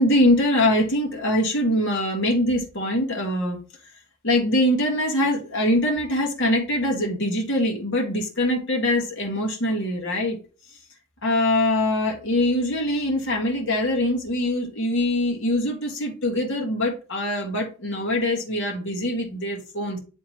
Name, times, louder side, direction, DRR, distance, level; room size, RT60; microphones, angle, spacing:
voice 1, 0.0-3.6 4.2-10.4 11.2-20.0, left 1 dB, 55° left, 0 dB, 1.8 m, -23 dB
9.9 x 3.8 x 3.1 m, 0.35 s
head